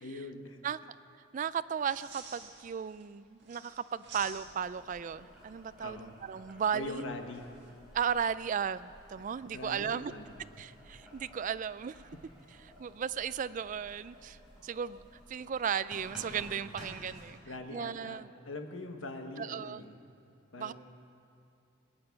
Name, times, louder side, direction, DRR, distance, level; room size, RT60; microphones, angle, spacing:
voice 1, 0.0-0.6 5.8-6.2 6.7-7.5 9.2-9.3 9.5-10.4 17.4-18.2 18.4-19.9 20.5-20.7, left 2 dB, 70° left, 5 dB, 1.3 m, -42 dB
voice 2, 1.3-7.0 7.9-10.1 10.6-12.0 12.8-15.0 15.3-17.4 17.7-18.3 19.4-19.9 20.6-20.7, right 7 dB, 40° right, 15 dB, 0.3 m, -35 dB
sound 1, 1.7-3.0 3.4-4.8 7.3-7.7, right 5 dB, 60° right, 1.9 m, -50 dB
Boiling, 4.0-17.3, equal, 5° right, 3.9 m, -54 dB
21.0 x 8.8 x 7.0 m, 2.6 s
head